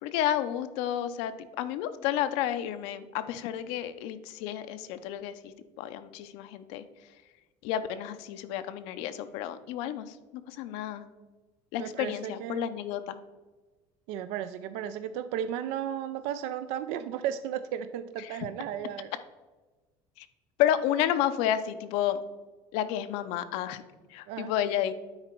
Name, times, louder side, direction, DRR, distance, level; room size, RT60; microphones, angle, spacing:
voice 1, 0.0-5.5 5.8-6.8 7.6-11.0 11.7-13.2 18.2-18.5 20.2-20.3 20.6-22.2 22.7-23.8 24.1-24.9, left 11 dB, 85° left, 10 dB, 0.5 m, -31 dB
voice 2, 11.8-12.7 14.1-19.1 24.3-24.5, right 10 dB, 85° right, 11 dB, 0.4 m, -34 dB
9.6 x 4.0 x 4.5 m, 1.2 s
cardioid pair, 155°, 10 cm